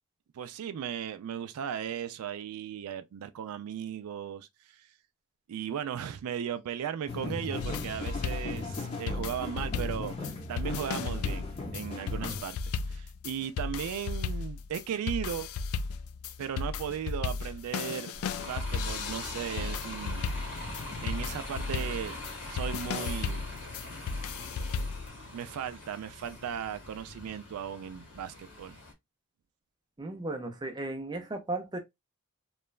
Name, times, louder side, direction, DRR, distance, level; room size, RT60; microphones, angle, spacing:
voice 1, 0.3-4.9 5.5-11.5 11.7-15.5 16.4-18.1 18.4-20.3 21.0-22.2 22.5-23.5 25.3-28.8, right 8 dB, 80° right, 0.3 m, -36 dB
sound 1, 7.1-12.4, left 3 dB, 30° left, 0.7 m, -38 dB
sound 2, 7.6-25.1, left 5 dB, 75° left, 0.3 m, -35 dB
Bus, 18.1-28.9, left 2 dB, 55° left, 1.0 m, -42 dB
voice 2, 30.0-31.8, right 2 dB, 20° right, 0.5 m, -35 dB
3.0 x 2.2 x 2.2 m
head